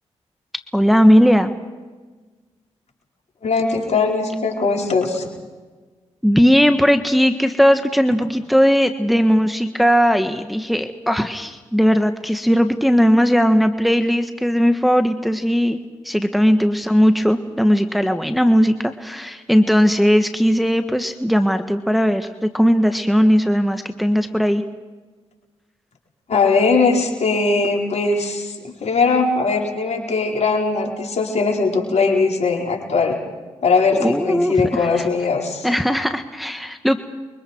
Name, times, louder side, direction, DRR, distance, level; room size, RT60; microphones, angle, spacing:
voice 1, 0.7-1.5 6.2-15.8 16.0-24.6 34.0-35.1 35.6-37.0, equal, ahead, 7 dB, 1.6 m, -17 dB
voice 2, 3.4-5.3 26.3-33.2 33.6-35.7, left 4 dB, 65° left, 0 dB, 4.9 m, -20 dB
29.5 x 23.0 x 4.7 m, 1.3 s
supercardioid pair, 45°, 12 cm